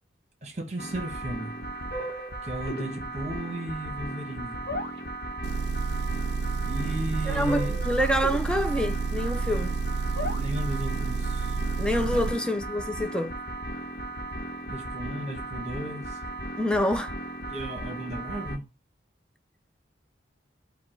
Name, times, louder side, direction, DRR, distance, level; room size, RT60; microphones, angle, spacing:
voice 1, 0.4-1.6 2.4-4.7 6.6-7.8 10.1-11.6 12.0-12.3 14.7-16.2 17.5-18.6, right 1 dB, 35° right, 1.0 m, -35 dB
sound 1, 0.8-18.6, right 1 dB, 55° left, 1.1 m, -36 dB
Motor vehicle (road) / Engine, 5.4-12.3, right 5 dB, 65° right, 0.3 m, -30 dB
voice 2, 7.2-9.8 11.8-13.3 16.6-17.1, equal, 5° left, 0.4 m, -27 dB
5.0 x 2.3 x 4.4 m
head